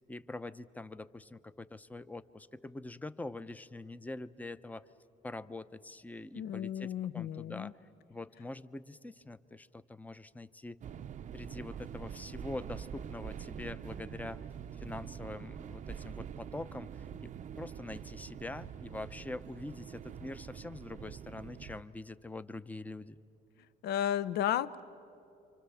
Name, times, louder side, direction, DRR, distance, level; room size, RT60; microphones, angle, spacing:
voice 1, 0.0-4.9 5.2-7.8 8.1-10.8 11.3-14.5 14.8-23.2, left 2 dB, 10° left, 14 dB, 0.7 m, -44 dB
voice 2, 6.3-7.7 23.8-24.8, left 11 dB, 75° left, 16 dB, 0.7 m, -33 dB
sound 1, 10.8-21.8, right 8 dB, 45° right, 0.6 m, -45 dB
29.0 x 25.5 x 7.1 m, 2.7 s
cardioid pair, 110°, 17 cm